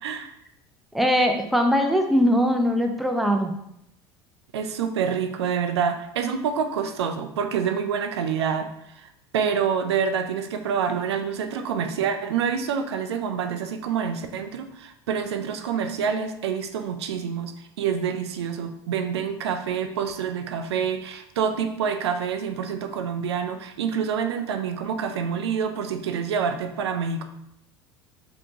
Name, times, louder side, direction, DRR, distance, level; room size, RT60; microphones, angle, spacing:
voice 1, 0.0-0.3 4.5-27.2, right 7 dB, 85° right, 7 dB, 0.4 m, -27 dB
voice 2, 0.9-3.5, equal, ahead, 3 dB, 0.5 m, -21 dB
4.2 x 2.8 x 2.8 m, 0.77 s
hypercardioid pair, 80°, 14 cm